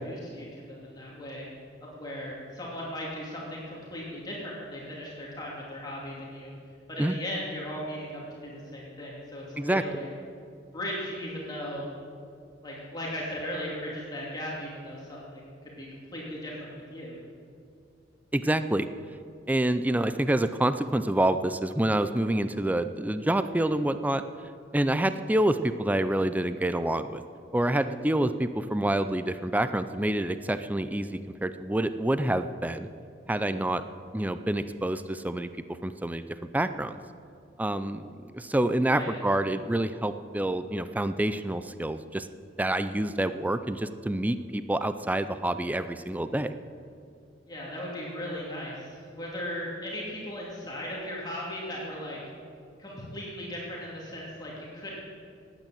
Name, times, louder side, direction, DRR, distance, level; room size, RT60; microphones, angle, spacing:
voice 1, 0.1-1.5 1.8-6.5 6.9-10.1 10.7-11.9 12.6-17.1 38.9-39.2 47.5-52.2 52.8-55.0, equal, 20° left, -5 dB, 2.7 m, -37 dB
voice 2, 18.3-18.9 19.5-24.2 24.7-27.2 27.5-32.9 33.3-33.8 34.1-35.5 35.8-36.3 36.5-37.0 37.6-38.1 38.3-42.3 42.6-46.5, right 1 dB, 10° right, 11 dB, 0.4 m, -27 dB
19.0 x 9.1 x 7.7 m, 2.4 s
head